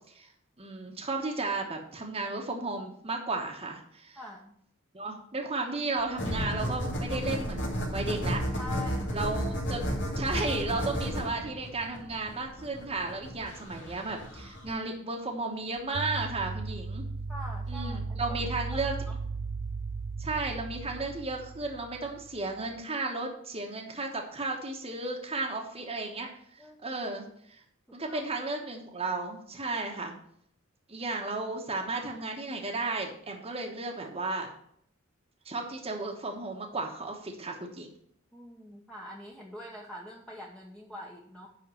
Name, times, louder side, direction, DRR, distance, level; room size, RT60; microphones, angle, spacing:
voice 1, 0.6-4.2 4.9-8.4 9.1-9.8 10.2-17.0 17.7-18.9 20.2-26.3 26.8-27.6 27.9-30.2 30.9-34.5 35.4-37.9, right 3 dB, 30° right, 1 dB, 1.2 m, -34 dB
voice 2, 4.2-4.5 8.6-9.3 17.3-18.2 18.7-19.2 26.6-26.8 27.9-28.2 28.6-28.7 38.3-41.5, left 1 dB, 5° left, -3 dB, 1.0 m, -44 dB
sound 1, 6.0-7.5 7.8-7.9 8.3-12.6 15.8-22.8, right 4 dB, 60° right, 0.4 m, -38 dB
sound 2, 6.2-14.7, equal, 60° left, 2.9 m, -33 dB
10.5 x 3.8 x 7.0 m, 0.68 s
head